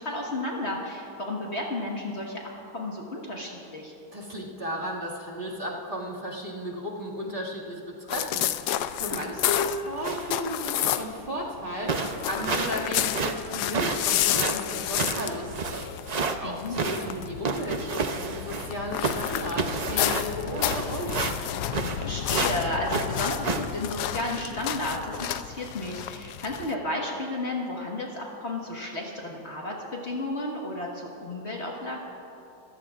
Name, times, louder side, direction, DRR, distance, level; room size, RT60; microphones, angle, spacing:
voice 1, 0.0-3.9 9.0-9.2 16.4-16.8 22.0-32.0, left 1 dB, 40° left, -2 dB, 1.7 m, -33 dB
voice 2, 4.1-15.8 16.4-21.3, equal, 30° right, -5 dB, 2.3 m, -34 dB
sound 1, 8.1-11.3 11.6-26.7, left 11 dB, 75° left, 1.1 m, -31 dB
sound 2, 10.0-10.4 10.8-11.1 11.5-11.6 11.9-12.8 13.1-16.4 16.7-18.8 19.0-22.0 22.3-22.6 22.9-23.6, right 4 dB, 75° right, 0.3 m, -30 dB
26.5 x 15.5 x 2.5 m, 2.9 s
omnidirectional pair, 1.8 m